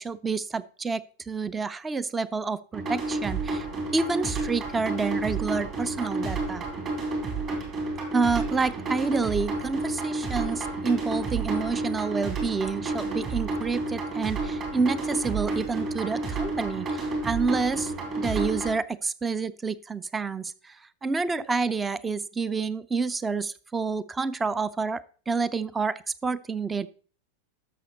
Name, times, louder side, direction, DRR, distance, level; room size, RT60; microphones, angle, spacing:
voice 1, 0.0-3.7 3.9-6.7 8.1-26.9, right 4 dB, 15° right, 18 dB, 0.5 m, -29 dB
sound 1, 2.7-18.7, right 3 dB, 30° right, 3.0 m, -30 dB
12.5 x 6.4 x 4.0 m, 0.42 s
figure-of-eight pair, 90°, 0 cm